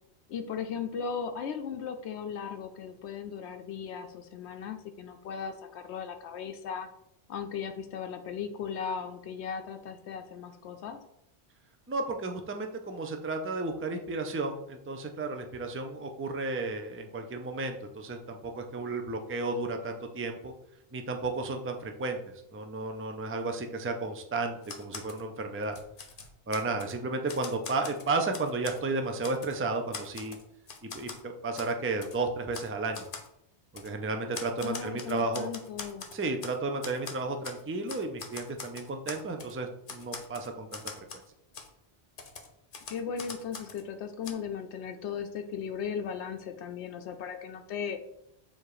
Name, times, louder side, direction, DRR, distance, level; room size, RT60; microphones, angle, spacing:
voice 1, 0.3-6.9 7.3-11.0 34.6-36.1 42.9-48.0, left 7 dB, 80° left, 6 dB, 0.9 m, -37 dB
voice 2, 11.9-20.5 20.9-22.2 22.5-25.8 26.5-30.4 30.8-33.1 33.7-35.5 36.1-40.8, right 3 dB, 20° right, 5 dB, 0.4 m, -33 dB
Typewriter, 24.6-25.2 25.6-26.9 27.3-28.8 29.2-29.6 29.9-31.2 31.6-31.7 32.0-32.2 32.5-32.7 32.9-33.3 33.8-33.9 34.3-36.6 36.8-37.6 37.9-39.5 39.9-41.3 41.5-41.7 42.2-43.8 44.2-44.3, left 5 dB, 55° left, 0.9 m, -42 dB
7.1 x 2.9 x 4.8 m, 0.78 s
omnidirectional pair, 1.1 m